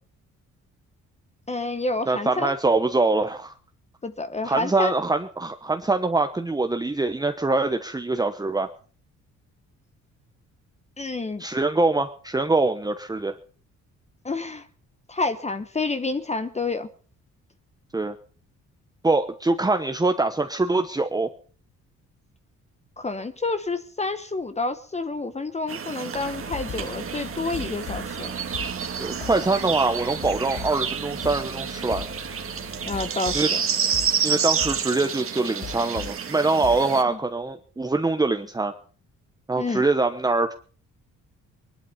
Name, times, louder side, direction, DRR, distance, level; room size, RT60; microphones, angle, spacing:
voice 1, 1.5-2.5 4.0-4.9 11.0-11.4 14.2-14.6 15.1-16.9 23.0-28.3 32.9-33.6 37.1-37.2 39.6-39.8, left 3 dB, 20° left, 10 dB, 1.0 m, -29 dB
voice 2, 2.1-3.5 4.4-8.7 11.4-13.4 17.9-18.2 19.0-21.3 29.0-32.0 33.3-33.5 34.2-38.7 39.5-40.5, right 3 dB, 10° right, 6 dB, 1.0 m, -24 dB
sound 1, 25.7-37.0, right 7 dB, 45° right, 1.9 m, -29 dB
sound 2, 26.1-36.2 36.6-37.1, left 8 dB, 60° left, 2.2 m, -39 dB
20.5 x 11.5 x 5.7 m, 0.42 s
cardioid pair, 90°, 30 cm